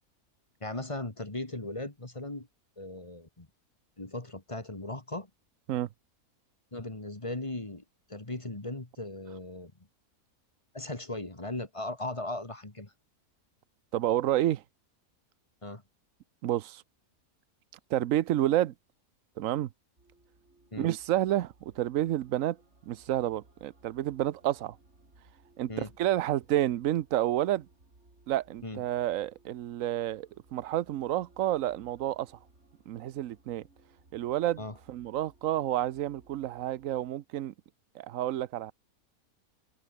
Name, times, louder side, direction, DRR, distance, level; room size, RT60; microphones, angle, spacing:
voice 1, 0.6-2.5 2.8-3.5 4.0-5.3 6.7-7.8 8.1-9.7 10.7-12.9 15.6-15.8 20.7-20.9 25.7-25.9 28.6-28.8 34.6-34.8, left 2 dB, 20° left, 2.1 m, -38 dB
voice 2, 13.9-14.6 16.4-16.8 17.9-18.7 19.4-19.7 20.8-22.6 22.9-24.8 25.6-27.7 28.3-32.3 32.9-33.6 34.1-34.6 34.9-37.5 37.9-38.7, right 13 dB, 65° right, 1.0 m, -29 dB
sound 1, 20.0-37.1, right 2 dB, 45° right, 4.4 m, -62 dB
omnidirectional pair, 1.6 m